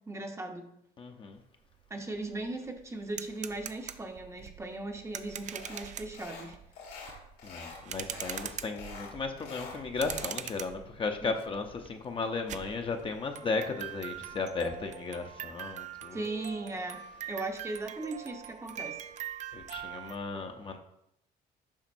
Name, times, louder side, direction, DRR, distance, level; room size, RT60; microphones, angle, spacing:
voice 1, 0.1-0.7 1.9-6.6 8.1-8.2 11.2-11.3 16.1-17.0 17.3-19.0, right 2 dB, 15° right, 4 dB, 0.7 m, -38 dB
voice 2, 1.0-1.4 7.4-16.2 19.5-20.8, left 4 dB, 30° left, 5 dB, 0.6 m, -35 dB
sound 1, 1.7-1.8 2.1-20.2, right 10 dB, 45° right, 0.4 m, -43 dB
sound 2, 5.5-5.9 6.1-6.5 6.7-7.8 8.1-8.5 8.8-10.4, left 5 dB, 80° left, 2.1 m, -45 dB
7.2 x 5.1 x 2.6 m, 0.78 s
cardioid pair, 110°, 17 cm